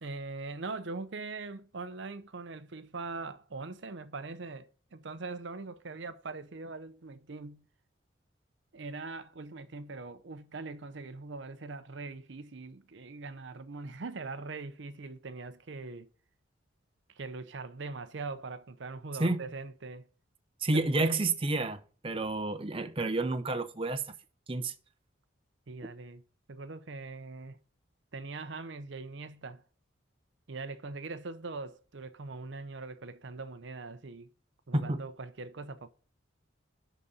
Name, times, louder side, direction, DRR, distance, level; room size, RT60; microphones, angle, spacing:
voice 1, 0.0-7.7 8.7-16.1 17.1-20.1 20.7-21.1 25.7-26.2 26.5-27.6 28.1-29.6 30.5-34.3 34.7-35.9, right 3 dB, 65° right, 0.7 m, -41 dB
voice 2, 20.6-24.0 24.5-24.7 34.7-35.0, right 2 dB, 25° right, 0.7 m, -30 dB
11.0 x 4.1 x 6.5 m
head